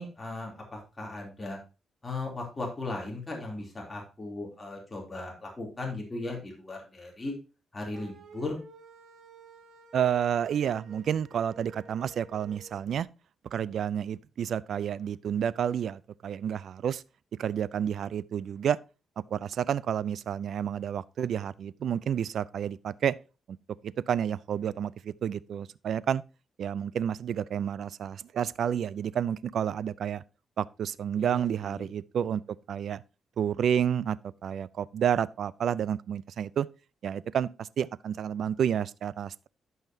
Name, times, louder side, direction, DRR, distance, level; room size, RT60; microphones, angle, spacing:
voice 1, 0.0-1.6 2.0-7.3 7.7-8.6 31.2-31.9, left 2 dB, 20° left, 2.9 m, -37 dB
sound 1, 7.9-12.8, right 4 dB, 85° right, 2.3 m, -52 dB
voice 2, 9.9-13.1 13.5-17.0 17.4-18.8 19.3-23.1 23.5-23.6 23.8-26.2 26.6-30.2 30.6-32.4 32.7-33.0 33.4-34.2 34.4-36.7 37.0-39.5, right 8 dB, 70° right, 0.4 m, -30 dB
12.0 x 5.7 x 2.7 m
cardioid pair, 100°, 0 cm